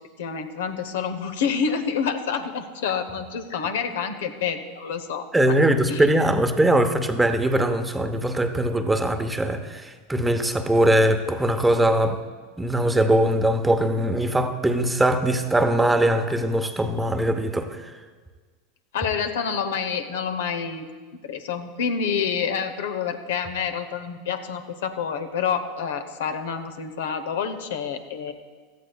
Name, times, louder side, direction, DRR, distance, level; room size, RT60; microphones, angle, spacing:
voice 1, 0.2-5.6 5.9-6.0 18.9-20.9 21.2-28.3, left 6 dB, 70° left, 8 dB, 0.9 m, -28 dB
voice 2, 5.3-12.2 12.6-17.9, right 1 dB, 10° right, 7 dB, 0.9 m, -21 dB
16.5 x 13.5 x 2.4 m, 1.5 s
hypercardioid pair, 95°, 0 cm